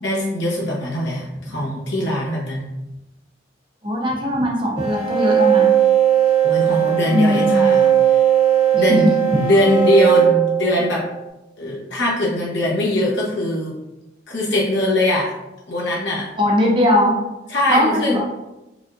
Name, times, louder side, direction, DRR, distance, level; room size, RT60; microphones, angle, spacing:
voice 1, 0.0-2.7 6.4-8.2 8.7-11.1 11.6-13.7 14.3-15.3 15.7-16.3 17.5-18.2, left 1 dB, 65° left, -4 dB, 1.0 m, -21 dB
voice 2, 3.8-5.7 7.1-7.8 8.7-9.1 16.4-17.2 17.7-18.2, left 1 dB, 25° right, -2 dB, 0.7 m, -19 dB
sound 1, 4.8-11.2, right 9 dB, 50° right, 1.2 m, -17 dB
4.9 x 2.4 x 2.5 m, 0.96 s
head